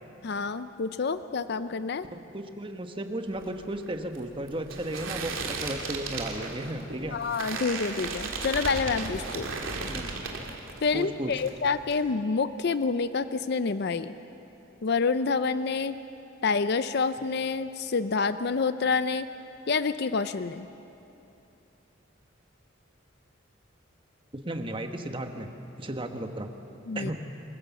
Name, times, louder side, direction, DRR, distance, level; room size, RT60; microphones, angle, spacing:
voice 1, 0.2-2.1 7.1-9.5 10.8-14.1 14.8-16.0 16.4-19.3 19.7-20.7 26.9-27.1, left 4 dB, 55° left, 12 dB, 0.5 m, -28 dB
voice 2, 2.1-7.2 9.9-10.1 10.9-11.3 24.3-25.5 25.8-26.5 26.9-27.2, right 1 dB, 25° right, 6 dB, 1.1 m, -34 dB
sound 1, 3.3-11.0 11.3-12.0, right 3 dB, 85° right, 2.5 m, -35 dB
26.5 x 15.5 x 7.2 m, 2.9 s
head